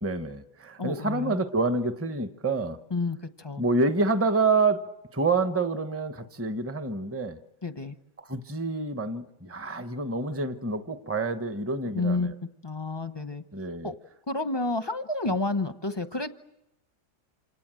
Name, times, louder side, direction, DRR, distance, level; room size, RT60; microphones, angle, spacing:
voice 1, 0.0-2.8 3.6-4.8 5.1-7.4 8.2-12.4 13.5-13.9 15.3-15.4, right 3 dB, 10° right, 9 dB, 0.8 m, -27 dB
voice 2, 0.8-1.4 2.9-3.6 7.6-8.0 11.9-12.3 12.6-13.4 13.8-13.9 14.3-16.3, left 3 dB, 20° left, 9 dB, 0.7 m, -30 dB
27.5 x 27.5 x 7.7 m, 0.85 s
omnidirectional pair, 1.9 m